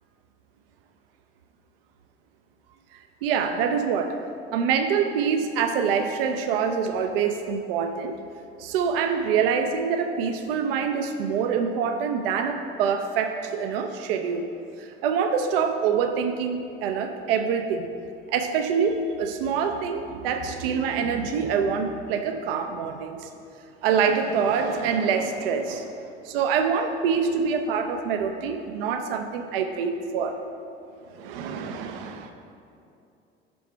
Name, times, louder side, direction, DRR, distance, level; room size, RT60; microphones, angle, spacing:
voice 1, 2.9-4.2 4.5-8.1 8.6-14.5 14.8-17.9 18.3-23.3 23.8-30.3 31.1-32.3, right 6 dB, 70° right, 6 dB, 0.5 m, -25 dB
5.6 x 5.2 x 4.4 m, 2.6 s
figure-of-eight pair, 60°, 29 cm